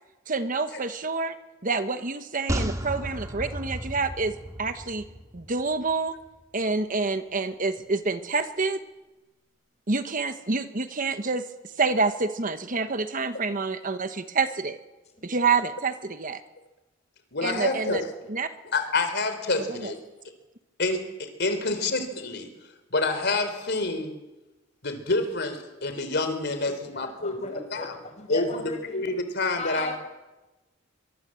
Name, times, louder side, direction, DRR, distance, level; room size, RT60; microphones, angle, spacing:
voice 1, 0.3-1.4 1.6-5.0 5.3-6.2 6.5-8.8 9.9-11.4 11.8-14.8 15.2-16.4 17.4-18.0 18.3-18.5 19.7-19.9, right 4 dB, 40° right, 10 dB, 1.2 m, -27 dB
sound 1, 2.5-5.9 6.2-6.3, equal, 15° right, 2.5 m, -33 dB
voice 2, 17.3-18.0 18.7-20.0 20.8-22.5 22.9-24.1 24.8-28.0 28.3-30.0, left 3 dB, 55° left, 9 dB, 3.6 m, -28 dB
voice 3, 26.9-29.1 29.6-30.0, left 3 dB, 35° left, 6 dB, 5.2 m, -36 dB
24.0 x 22.5 x 7.8 m, 1.1 s
head